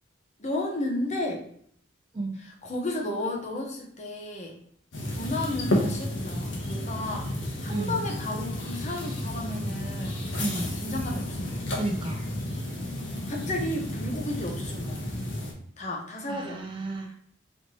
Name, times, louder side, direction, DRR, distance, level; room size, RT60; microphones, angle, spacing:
voice 1, 0.4-1.5 2.6-4.6 5.1-7.3 7.6-10.2 10.6-11.6 13.3-15.0 15.8-16.6, left 1 dB, 35° left, 0 dB, 0.8 m, -33 dB
sound 1, 4.9-15.5, left 1 dB, 65° left, 1.0 m, -32 dB
voice 2, 10.4-10.7 11.8-12.2 16.3-17.2, right 2 dB, 25° right, 2 dB, 0.4 m, -32 dB
4.2 x 2.9 x 3.0 m, 0.64 s
head